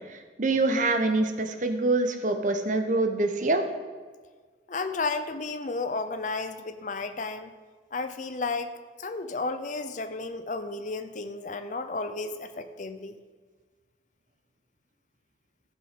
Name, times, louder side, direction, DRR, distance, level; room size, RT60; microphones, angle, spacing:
voice 1, 0.1-3.6, right 2 dB, 40° right, 6 dB, 1.0 m, -25 dB
voice 2, 4.7-7.5 7.9-8.7 9.0-13.1, left 3 dB, 40° left, 10 dB, 0.6 m, -33 dB
15.0 x 7.0 x 5.1 m, 1.5 s
head